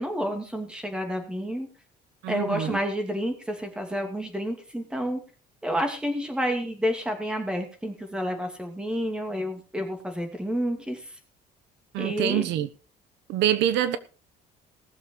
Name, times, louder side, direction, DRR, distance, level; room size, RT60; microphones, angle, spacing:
voice 1, 0.0-1.7 2.3-5.2 5.6-11.0 12.0-12.5, equal, 5° right, 2.6 m, -29 dB
voice 2, 2.2-2.8 11.9-12.7 13.3-14.0, right 11 dB, 80° right, 1.0 m, -25 dB
19.0 x 6.9 x 4.6 m
cardioid pair, 165°, 18 cm